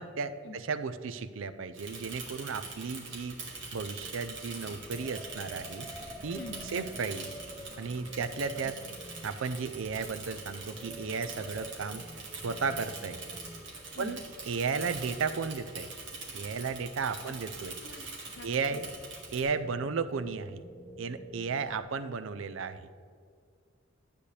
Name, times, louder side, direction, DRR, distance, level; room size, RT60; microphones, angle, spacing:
voice 1, 0.0-3.4 3.7-5.9 6.2-6.4 6.7-7.3 7.8-8.8 9.2-12.0 12.4-13.2 14.0-14.2 14.5-15.9 16.3-17.8 18.4-18.9 19.3-20.6 21.0-22.9, right 5 dB, 80° right, 12 dB, 0.5 m, -34 dB
Bicycle / Mechanisms, 1.7-19.4, right 3 dB, 65° right, 1.9 m, -44 dB
sound 1, 4.9-13.8 14.1-14.7 17.3-18.6 19.5-21.8, equal, 5° left, 0.6 m, -49 dB
voice 2, 6.3-6.9 8.6-8.7 13.9-14.3 17.2-17.3 17.8-18.1 18.3-18.8 21.7-21.8, left 2 dB, 60° left, 9 dB, 0.6 m, -46 dB
12.0 x 8.4 x 3.3 m, 2.3 s
head